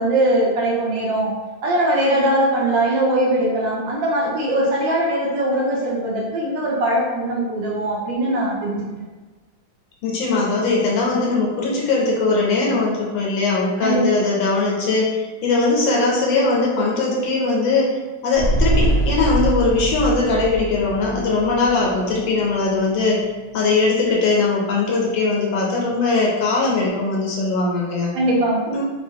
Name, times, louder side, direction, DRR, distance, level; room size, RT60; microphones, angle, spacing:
voice 1, 0.0-1.3 1.6-8.9 13.8-14.0 28.1-28.7, right 1 dB, 75° right, -3 dB, 1.3 m, -20 dB
voice 2, 10.0-18.0 18.2-23.2 23.5-28.1 28.7-28.8, left 3 dB, 75° left, -3 dB, 1.3 m, -20 dB
sound 1, 18.3-22.9 23.2-23.3, right 1 dB, 50° left, 1.0 m, -23 dB
3.3 x 2.3 x 2.6 m, 1.3 s
omnidirectional pair, 2.2 m